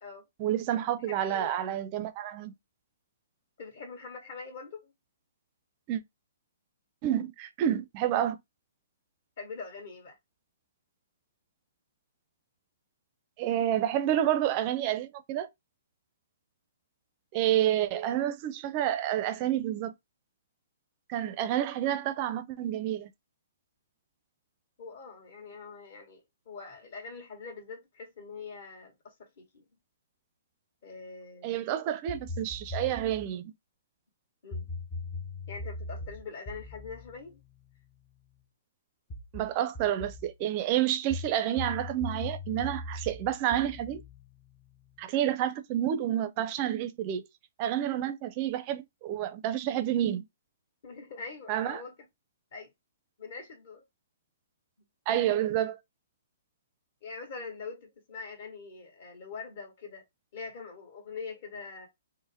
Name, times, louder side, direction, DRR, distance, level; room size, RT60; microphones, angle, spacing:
voice 1, 0.4-2.5 5.9-6.0 7.0-8.4 13.4-15.5 17.3-19.9 21.1-23.1 31.4-33.5 39.3-44.0 45.0-47.2 47.6-50.3 51.5-51.8 55.1-55.8, right 11 dB, 30° right, 0.5 m, -29 dB
voice 2, 1.1-1.5 3.6-4.9 9.4-10.2 24.8-29.7 30.8-31.7 34.4-34.7 35.5-37.4 50.8-52.1 52.5-52.7 53.2-53.8 57.0-60.0 60.3-61.9, left 4 dB, 50° left, 1.7 m, -43 dB
sound 1, 32.1-33.4 34.5-38.2 39.1-40.3 41.1-45.0, left 2 dB, 20° left, 0.7 m, -40 dB
4.2 x 2.1 x 3.5 m
hypercardioid pair, 160°, 0 cm